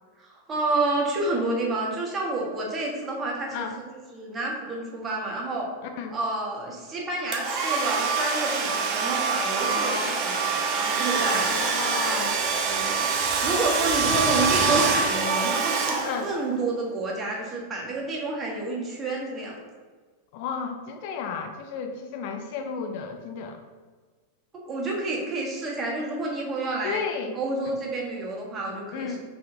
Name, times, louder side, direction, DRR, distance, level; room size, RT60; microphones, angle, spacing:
voice 1, 0.2-3.7 4.1-5.7 6.1-11.5 11.8-13.0 13.4-19.5 24.7-27.0 27.4-29.2, right 2 dB, 25° right, -3 dB, 1.3 m, -29 dB
Domestic sounds home sounds, 7.3-16.5, right 5 dB, 40° right, 0.7 m, -25 dB
voice 2, 9.6-10.2 11.2-12.4 14.7-14.9 16.0-16.3 20.3-23.6 26.8-27.4 28.9-29.2, left 6 dB, 50° left, 5 dB, 0.4 m, -33 dB
5.5 x 3.4 x 2.6 m, 1.4 s
figure-of-eight pair, 90°, 0 cm